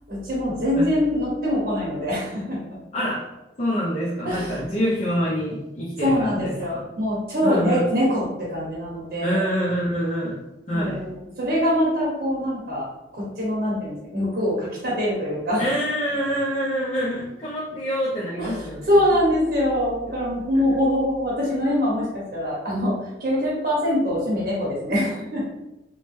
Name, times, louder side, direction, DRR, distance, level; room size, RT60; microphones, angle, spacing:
voice 1, 0.1-2.6 4.2-4.6 6.0-9.5 10.7-15.7 18.4-25.4, equal, 60° right, -6 dB, 0.9 m, -24 dB
voice 2, 2.9-3.2 3.6-6.8 7.4-7.8 9.2-10.4 10.7-11.0 15.6-18.9, equal, 40° left, -8 dB, 0.6 m, -26 dB
2.9 x 2.1 x 3.1 m, 0.96 s
head